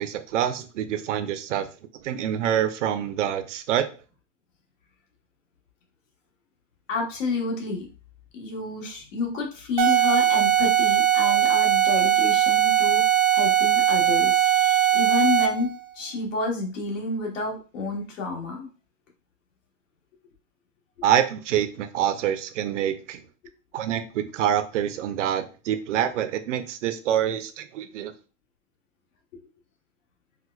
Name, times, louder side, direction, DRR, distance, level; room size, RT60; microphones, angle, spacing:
voice 1, 0.0-1.7 2.0-3.9 21.0-23.2 23.7-28.1, right 10 dB, 75° right, 9 dB, 0.6 m, -26 dB
voice 2, 6.9-7.9 8.3-13.0 13.3-18.7, left 3 dB, 80° left, 0 dB, 1.3 m, -29 dB
sound 1, 9.8-15.7, right 11 dB, 35° right, 0.4 m, -20 dB
4.5 x 2.2 x 2.3 m, 0.36 s
supercardioid pair, 175°, 37 cm